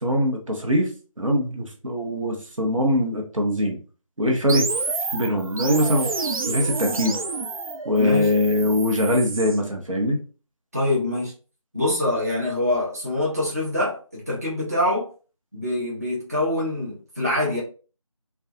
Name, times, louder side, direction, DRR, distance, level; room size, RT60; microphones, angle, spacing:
voice 1, 0.0-0.9 1.2-3.8 4.2-4.8 5.1-6.1 6.5-7.2 7.8-10.2, left 1 dB, 65° right, 0.8 m, -22 dB
sound 1, 4.5-9.6, right 4 dB, 85° right, 0.4 m, -29 dB
voice 2, 8.0-8.3 10.7-11.3 11.7-15.1 15.5-17.6, left 1 dB, 30° right, 0.7 m, -25 dB
2.4 x 2.3 x 2.6 m
figure-of-eight pair, 170°, 18 cm